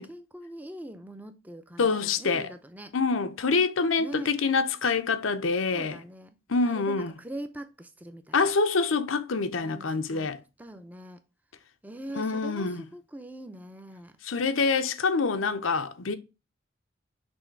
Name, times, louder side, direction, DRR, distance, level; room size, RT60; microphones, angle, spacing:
voice 1, 0.0-3.0 4.0-4.3 5.7-6.4 6.6-8.4 9.6-10.3 10.6-11.2 11.8-14.2, right 1 dB, 10° right, 0.6 m, -42 dB
voice 2, 1.8-2.5 2.9-6.0 6.5-7.1 8.3-10.4 12.2-12.8 14.2-16.2, left 4 dB, 85° left, 0.7 m, -26 dB
6.3 x 3.3 x 4.5 m
head